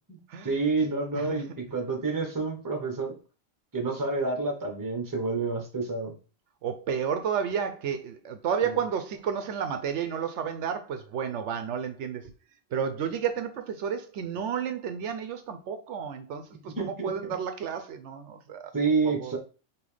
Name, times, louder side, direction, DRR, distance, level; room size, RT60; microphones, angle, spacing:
voice 1, 0.4-3.1 3.7-6.1 8.6-8.7 16.8-17.3 18.7-19.4, right 3 dB, 20° right, 0.8 m, -29 dB
voice 2, 1.1-1.5 6.6-12.3 12.7-18.7 19.0-19.3, right 7 dB, 75° right, 0.9 m, -31 dB
5.4 x 2.7 x 3.3 m
omnidirectional pair, 1.2 m